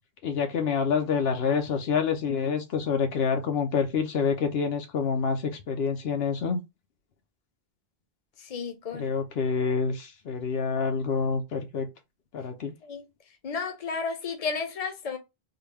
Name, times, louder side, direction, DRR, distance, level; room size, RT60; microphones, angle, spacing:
voice 1, 0.2-6.6 8.9-11.9 12.3-12.7, left 5 dB, 80° left, 0.9 m, -27 dB
voice 2, 8.4-9.1 12.8-13.1 13.4-15.2, left 5 dB, 40° left, 0.8 m, -33 dB
3.8 x 2.2 x 3.3 m
omnidirectional pair, 1.0 m